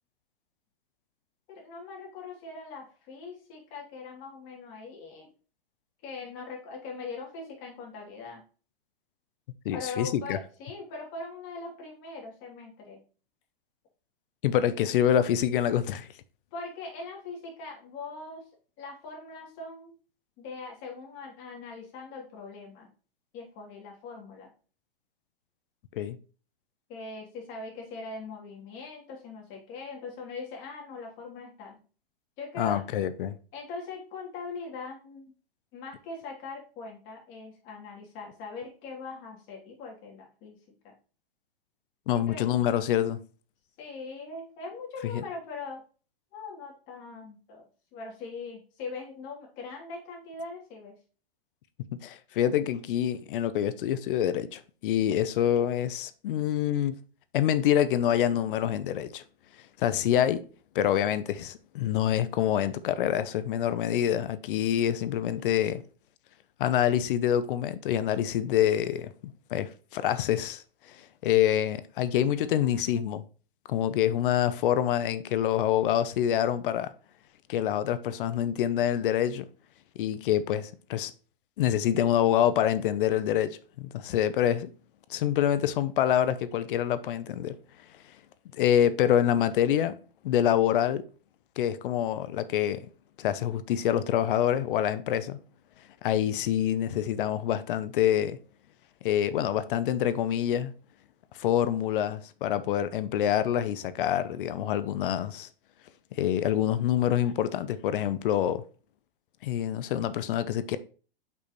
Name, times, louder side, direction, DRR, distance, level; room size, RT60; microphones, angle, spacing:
voice 1, 1.5-5.3 6.0-8.4 9.7-13.0 16.5-18.4 18.8-19.9 20.4-22.9 23.3-24.5 26.9-31.8 32.4-32.8 33.5-35.3 35.7-40.6 40.8-40.9 42.3-42.5 43.8-45.8 46.3-50.9, left 3 dB, 40° left, 3.1 m, -41 dB
voice 2, 9.6-10.4 14.4-16.1 26.0-26.2 32.6-33.4 42.1-43.2 45.1-45.2 52.0-57.0 57.3-59.2 59.8-60.4 60.7-65.8 66.6-70.6 71.2-73.2 73.7-76.9 77.5-79.5 80.0-81.1 81.6-84.7 85.1-87.6 88.5-90.0 90.2-91.0 91.6-92.8 93.2-95.4 96.0-98.4 99.0-100.7 101.4-105.5 106.1-108.6 109.4-110.8, left 10 dB, 60° left, 0.7 m, -26 dB
6.3 x 5.5 x 3.1 m
hypercardioid pair, 130°, 30 cm